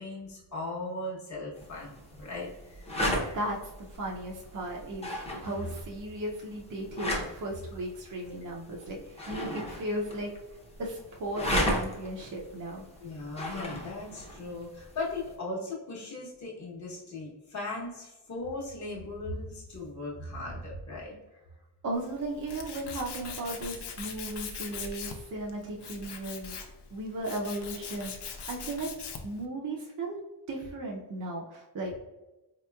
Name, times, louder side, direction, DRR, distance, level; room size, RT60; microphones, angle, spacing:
voice 1, 0.0-2.9 3.2-3.4 13.0-21.1, left 2 dB, 40° left, -5 dB, 0.9 m, -38 dB
sound 1, 1.6-15.4, equal, 15° left, 0.6 m, -36 dB
voice 2, 3.0-10.3 10.8-12.8 21.8-28.9 29.2-30.2 30.5-32.0, right 1 dB, 45° right, -2 dB, 0.5 m, -36 dB
Tools, 21.9-29.4, left 5 dB, 70° left, 0.6 m, -41 dB
4.1 x 2.9 x 2.2 m, 1.0 s
wide cardioid pair, 160°, 43 cm